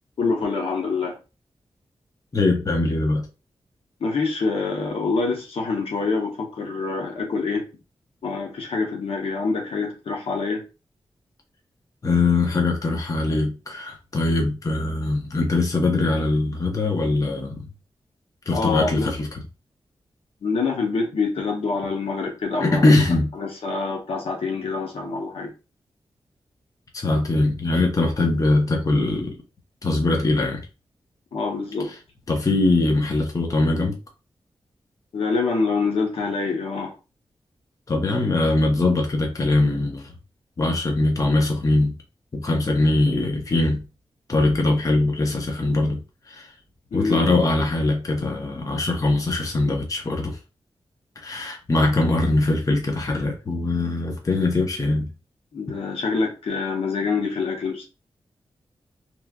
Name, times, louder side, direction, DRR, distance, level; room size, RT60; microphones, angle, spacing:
voice 1, 0.2-1.2 4.0-7.7 8.2-10.6 18.5-19.1 20.4-23.0 23.4-25.5 31.3-31.9 35.1-36.9 46.9-47.3 55.5-57.9, left 4 dB, 80° left, 0.8 m, -26 dB
voice 2, 2.3-3.3 12.0-17.7 18.5-19.5 22.6-23.3 26.9-29.4 29.8-30.7 31.8-32.0 32.3-34.0 37.9-40.1 40.6-42.0 42.3-43.9 44.3-46.5 46.9-50.4 51.2-55.1 55.7-55.8, left 2 dB, 35° left, 0.6 m, -22 dB
3.0 x 2.3 x 2.2 m
wide cardioid pair, 90°, 10 cm